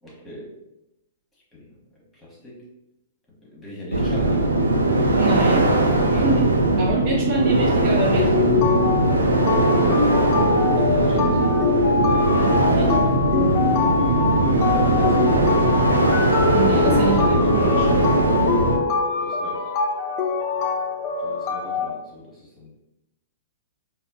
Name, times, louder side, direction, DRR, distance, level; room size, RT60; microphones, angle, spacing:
voice 1, 0.0-0.6 1.5-2.6 3.4-4.5 10.8-11.6 14.3-15.4 18.3-18.7 19.2-19.7 21.2-22.7, left 1 dB, 10° left, -5 dB, 1.2 m, -40 dB
sound 1, 3.9-18.8, right 2 dB, 85° right, 0.4 m, -19 dB
voice 2, 5.2-5.8 6.1-8.5 12.3-13.0 16.5-17.9, right 3 dB, 40° right, -2 dB, 0.6 m, -26 dB
sound 2, 8.2-21.9, left 5 dB, 35° left, 0.4 m, -24 dB
4.1 x 2.0 x 2.7 m, 0.91 s
figure-of-eight pair, 110°, 0 cm